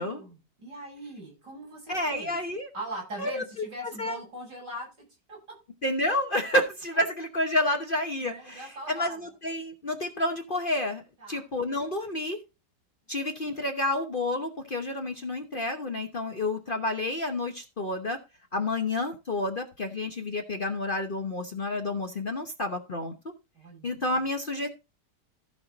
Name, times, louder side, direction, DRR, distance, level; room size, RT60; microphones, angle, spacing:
voice 1, 0.0-2.4 2.7-5.4 8.2-9.2 11.2-11.4 23.5-24.1, right 1 dB, 75° right, 7.9 m, -41 dB
voice 2, 1.9-2.7 3.2-3.4 4.0-4.2 5.8-12.4 13.1-18.2 18.5-23.1 23.8-24.7, left 1 dB, 35° left, 1.0 m, -29 dB
14.5 x 5.6 x 4.0 m
omnidirectional pair, 1.8 m